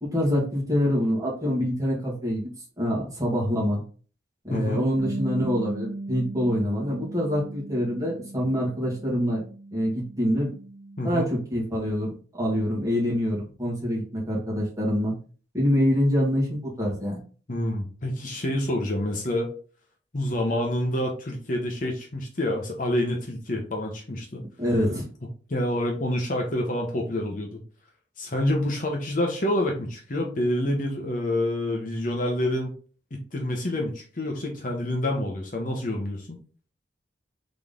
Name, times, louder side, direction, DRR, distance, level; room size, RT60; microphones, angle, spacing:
voice 1, 0.0-2.5 2.8-3.8 4.4-9.4 9.7-10.5 11.0-15.1 15.5-17.2 24.6-25.0, equal, 15° right, -5 dB, 1.8 m, -25 dB
voice 2, 4.5-4.8 11.0-11.3 17.5-19.5 20.1-24.4 25.5-27.6 28.2-32.7 33.1-36.4, left 1 dB, 45° left, 1 dB, 0.9 m, -27 dB
Bass guitar, 5.0-11.2, right 2 dB, 80° right, 0.6 m, -38 dB
3.9 x 3.7 x 3.5 m, 0.40 s
head